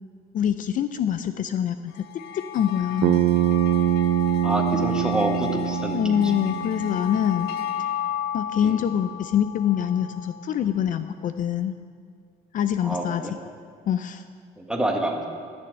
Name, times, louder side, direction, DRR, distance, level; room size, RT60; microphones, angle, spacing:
voice 1, 0.3-2.0 2.3-3.2 5.9-7.5 8.3-11.7 12.5-13.4 13.9-14.2, left 9 dB, 50° left, 10 dB, 0.5 m, -25 dB
sound 1, 1.9-10.5, left 9 dB, 85° left, 0.8 m, -34 dB
Bass guitar, 3.0-7.3, right 11 dB, 75° right, 0.7 m, -24 dB
voice 2, 4.4-6.2 8.6-8.8 12.8-13.3 14.6-15.2, right 1 dB, 5° right, 1 dB, 1.6 m, -27 dB
14.0 x 7.0 x 7.5 m, 2.1 s
cardioid pair, 110°, 17 cm